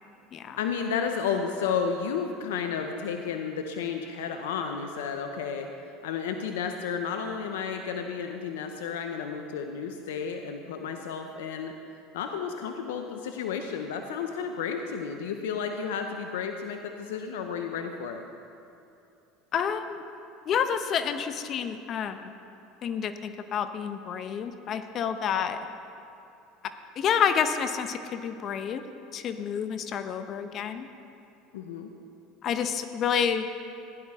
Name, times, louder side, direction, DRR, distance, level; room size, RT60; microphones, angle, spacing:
voice 1, 0.6-11.7 12.1-18.2 31.5-31.9, left 6 dB, 85° left, 5 dB, 0.7 m, -32 dB
voice 2, 19.5-20.0 20.5-22.3 22.8-25.7 27.0-28.8 29.1-30.9 32.4-33.6, left 7 dB, 45° left, 9 dB, 0.8 m, -29 dB
16.0 x 10.5 x 3.6 m, 2.8 s
supercardioid pair, 90°, 0 cm